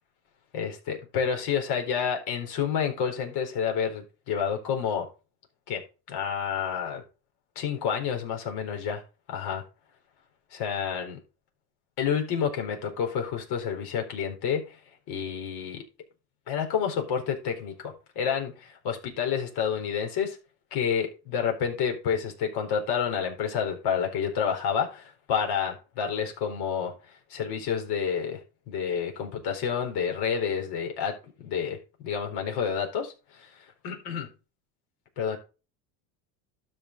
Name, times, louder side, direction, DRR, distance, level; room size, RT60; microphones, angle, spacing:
voice 1, 0.5-5.1 5.7-5.8 6.1-7.0 7.6-9.0 9.3-9.6 10.5-11.2 12.0-14.8 15.1-15.8 16.5-20.4 20.7-28.4 28.7-34.3 35.2-35.4, left 7 dB, 55° left, 2 dB, 4.3 m, -29 dB
12.5 x 5.5 x 3.9 m, 0.31 s
cardioid pair, 135°, 46 cm